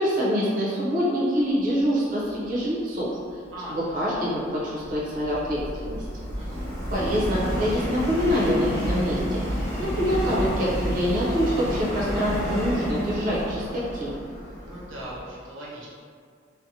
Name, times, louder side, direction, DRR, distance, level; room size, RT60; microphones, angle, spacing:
voice 1, 0.0-3.4 3.7-6.0 6.9-9.4 9.8-14.2, equal, 45° right, -7 dB, 0.6 m, -25 dB
voice 2, 3.5-3.9 6.3-6.7 14.6-15.9, right 1 dB, 85° right, -6 dB, 0.6 m, -39 dB
Subway metro underground, 3.9-15.2, equal, 15° left, 0.7 m, -30 dB
2.6 x 2.1 x 2.7 m, 2.1 s
head